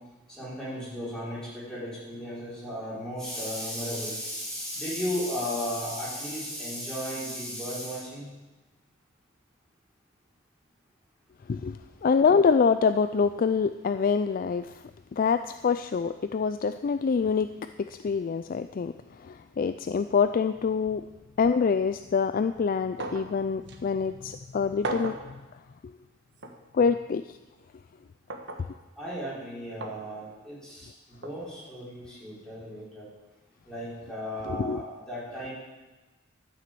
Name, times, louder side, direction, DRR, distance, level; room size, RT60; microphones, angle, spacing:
voice 1, 0.4-8.3 29.0-30.9 31.2-33.1 33.7-34.8 35.1-35.5, equal, 5° left, -9 dB, 5.2 m, -35 dB
voice 2, 11.5-14.7 15.1-17.5 17.8-18.9 19.2-21.0 21.4-25.1 26.7-27.2 34.5-34.8, left 5 dB, 45° left, 10 dB, 0.3 m, -25 dB
sound 1, 23.0-23.3 23.7-23.8 24.8-25.3 26.4-26.6 28.3-28.7 29.8-30.0 31.2-31.4, right 2 dB, 60° right, 1.3 m, -35 dB
12.5 x 6.8 x 7.7 m, 1.1 s
head